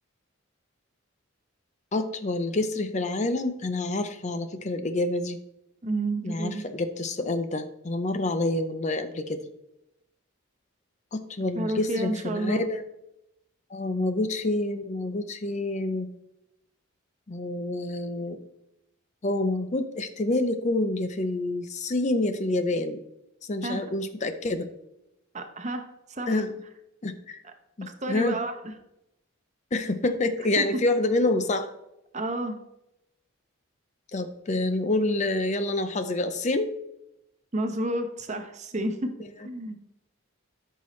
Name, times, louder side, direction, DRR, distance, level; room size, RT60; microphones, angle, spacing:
voice 1, 1.9-5.4 6.2-9.5 11.1-12.8 13.7-16.1 17.3-18.4 19.2-23.0 23.4-24.7 26.3-26.5 27.0-27.4 27.8-28.4 29.7-31.7 34.1-36.7, left 2 dB, 35° left, 9 dB, 0.5 m, -27 dB
voice 2, 5.8-6.6 11.5-12.6 23.6-23.8 25.3-26.4 27.4-27.5 28.0-28.5 30.6-30.7 32.1-32.6 37.5-39.1 39.4-39.8, right 1 dB, 35° right, 6 dB, 0.9 m, -30 dB
13.0 x 5.5 x 3.1 m, 0.86 s
head